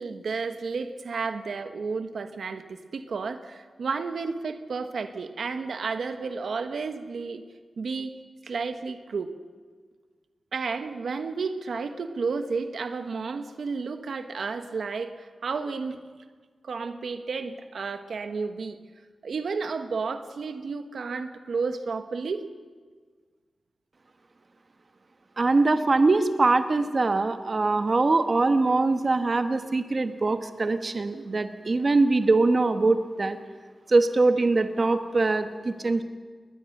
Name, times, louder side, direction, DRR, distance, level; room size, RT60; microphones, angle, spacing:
voice 1, 0.0-7.4 7.8-8.2 8.4-9.3 10.5-16.0 16.6-18.8 19.2-22.5, right 4 dB, 85° right, 8 dB, 1.2 m, -32 dB
voice 2, 25.4-33.4 33.9-36.0, right 3 dB, 45° right, 8 dB, 1.2 m, -23 dB
21.0 x 20.0 x 6.6 m, 1.5 s
wide cardioid pair, 100°, 0 cm